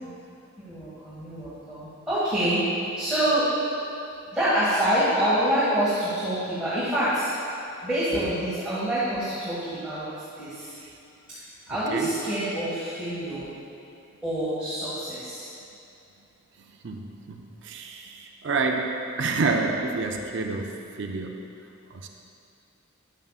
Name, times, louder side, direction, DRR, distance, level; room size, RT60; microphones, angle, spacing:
voice 1, 0.6-2.6 3.0-3.5 4.3-7.3 7.8-10.0 10.4-10.8 11.7-13.5 14.2-15.5, right 1 dB, 5° right, -13 dB, 1.7 m, -26 dB
voice 2, 16.8-21.4 21.9-22.1, right 3 dB, 55° right, 2 dB, 0.5 m, -28 dB
11.0 x 9.0 x 2.4 m, 2.6 s
head